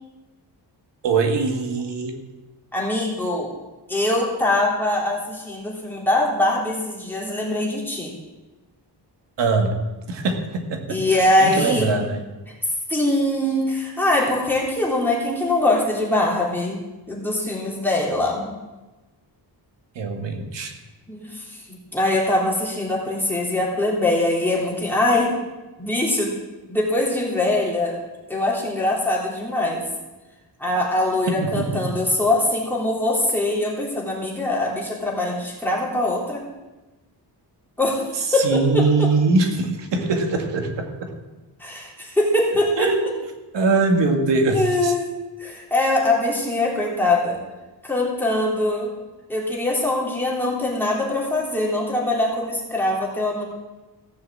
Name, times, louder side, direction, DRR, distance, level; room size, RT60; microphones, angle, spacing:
voice 1, 1.0-2.2 9.4-9.8 10.1-10.4 10.7-12.2 20.0-20.8 31.4-31.9 38.4-41.1 42.8-43.1 43.5-44.9, right 3 dB, 80° right, 4 dB, 2.0 m, -22 dB
voice 2, 2.7-3.5 3.9-8.1 10.9-11.9 12.9-16.8 17.1-18.5 21.1-25.3 25.8-26.4 26.7-28.0 28.3-29.8 30.6-36.4 37.8-39.1 41.6-42.9 44.5-45.1 45.4-47.4 47.8-48.9 49.3-53.4, left 1 dB, 5° left, -4 dB, 3.5 m, -22 dB
16.0 x 7.0 x 7.6 m, 1.1 s
wide cardioid pair, 155°, 42 cm